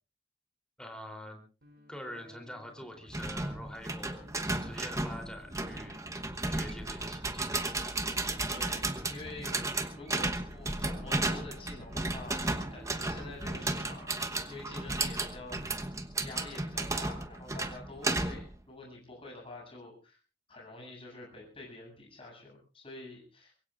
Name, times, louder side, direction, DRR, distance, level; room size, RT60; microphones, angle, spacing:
voice 1, 0.8-1.4 1.9-4.3 4.6-6.0 6.5-7.6, equal, 5° left, 3 dB, 3.3 m, -45 dB
sound 1, 1.6-19.6, left 1 dB, 65° right, 6.3 m, -57 dB
sound 2, 3.1-18.6, right 2 dB, 20° right, 1.1 m, -34 dB
voice 2, 8.5-14.1 14.5-15.6 16.2-20.2 20.5-23.5, left 2 dB, 35° left, -1 dB, 7.7 m, -47 dB
24.0 x 22.0 x 2.5 m, 0.34 s
head